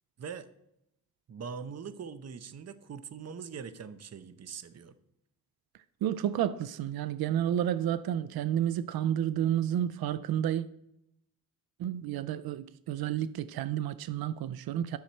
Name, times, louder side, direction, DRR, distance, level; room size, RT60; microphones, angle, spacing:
voice 1, 1.3-4.9, right 6 dB, 45° right, 0.7 m, -42 dB
voice 2, 6.0-10.6 11.8-15.0, right 10 dB, 90° right, 0.5 m, -30 dB
10.5 x 6.5 x 4.4 m
wide cardioid pair, 110°, 35 cm